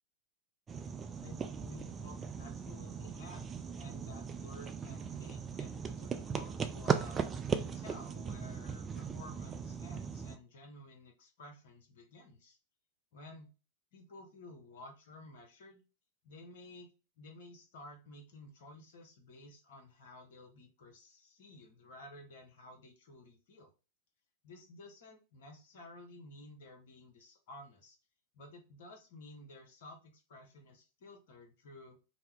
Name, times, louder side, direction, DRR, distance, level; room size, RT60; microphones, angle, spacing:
sound 1, 0.7-10.4, right 6 dB, 20° right, 0.3 m, -38 dB
voice 1, 1.2-3.4 3.8-7.2 7.6-12.6 13.1-13.5 13.9-15.8 16.2-16.9 17.2-23.7 24.4-28.0 28.3-32.0, left 1 dB, 55° left, 2 dB, 0.9 m, -53 dB
2.7 x 2.2 x 3.4 m, 0.31 s
figure-of-eight pair, 90°, 0 cm